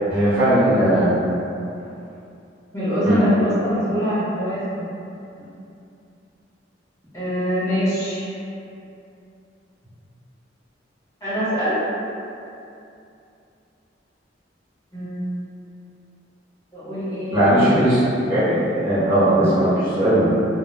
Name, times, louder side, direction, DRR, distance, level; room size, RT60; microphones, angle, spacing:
voice 1, 0.1-1.1 3.0-3.2 17.3-18.0 18.3-20.3, right 1 dB, 15° right, -16 dB, 0.7 m, -18 dB
voice 2, 2.7-4.8 7.1-8.3 11.2-11.8 14.9-15.2 16.7-17.6, equal, 20° left, -13 dB, 1.1 m, -24 dB
2.2 x 2.1 x 3.2 m, 2.6 s
head